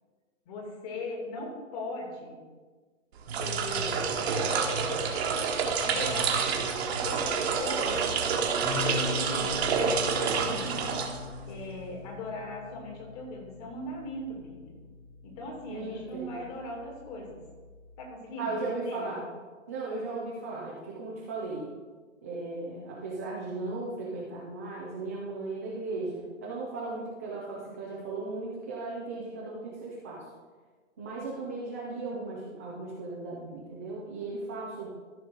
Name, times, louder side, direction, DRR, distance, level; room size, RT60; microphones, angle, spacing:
voice 1, 0.5-2.4 3.4-5.1 5.8-6.6 7.0-8.2 8.8-10.7 11.5-14.7 15.2-17.4 18.0-18.6 18.8-19.1, left 1 dB, 30° left, -1 dB, 2.4 m, -39 dB
sound 1, 3.2-11.6, right 5 dB, 50° right, 1.4 m, -28 dB
sound 2, 8.6-18.1, left 5 dB, 85° left, 2.7 m, -42 dB
voice 2, 15.7-16.4 18.4-19.2 19.7-21.7 22.2-30.2 31.0-34.9, right 3 dB, 10° right, -5 dB, 0.4 m, -36 dB
14.0 x 5.5 x 3.8 m, 1.4 s
hypercardioid pair, 155°, 39 cm